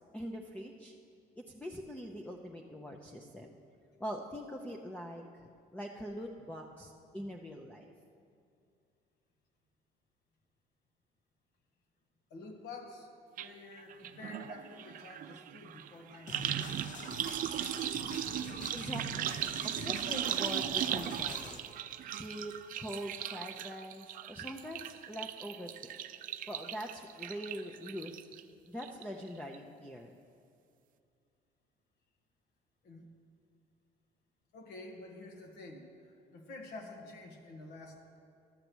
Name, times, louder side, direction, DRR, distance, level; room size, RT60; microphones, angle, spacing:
voice 1, 0.1-0.9 1.4-3.5 4.0-5.5 5.7-7.9 18.7-21.6 22.1-25.9 26.5-28.1 28.6-30.1, equal, 10° left, 1 dB, 0.6 m, -43 dB
voice 2, 12.3-16.9 18.0-18.5 26.3-26.4 32.8-33.1 34.5-38.2, left 2 dB, 80° left, 3 dB, 1.4 m, -50 dB
sound 1, 13.4-13.5 13.8-28.4 28.8-29.3 29.5-29.6, right 11 dB, 55° right, 0.4 m, -38 dB
sound 2, 16.3-21.6, left 4 dB, 50° left, 0.9 m, -46 dB
12.0 x 6.7 x 6.1 m, 2.4 s
cardioid pair, 110°, 17 cm